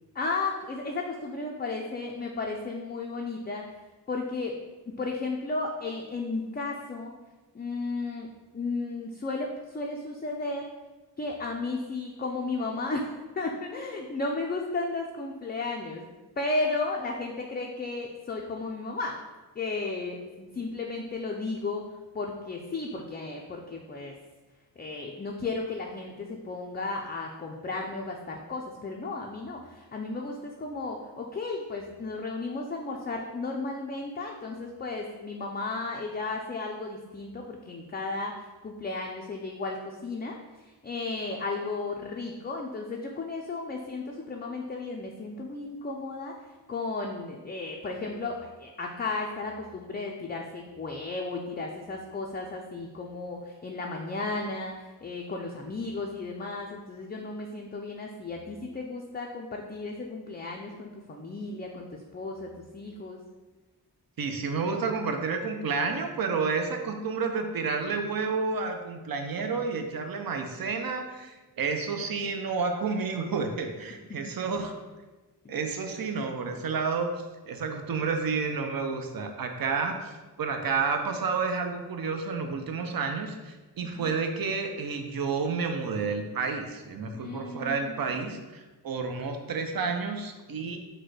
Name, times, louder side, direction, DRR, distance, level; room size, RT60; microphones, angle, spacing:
voice 1, 0.1-3.7 4.1-7.2 7.5-10.7 11.2-13.1 13.4-19.2 19.6-24.1 24.8-46.4 46.7-63.2 73.9-74.2 75.4-75.5 83.8-84.1 87.1-88.3, left 3 dB, 25° left, 0 dB, 0.4 m, -34 dB
voice 2, 64.2-74.7 75.5-77.1 77.5-80.1 80.4-90.8, right 4 dB, 55° right, 5 dB, 0.6 m, -30 dB
4.4 x 2.2 x 4.7 m, 1.2 s
cardioid pair, 75°, 43 cm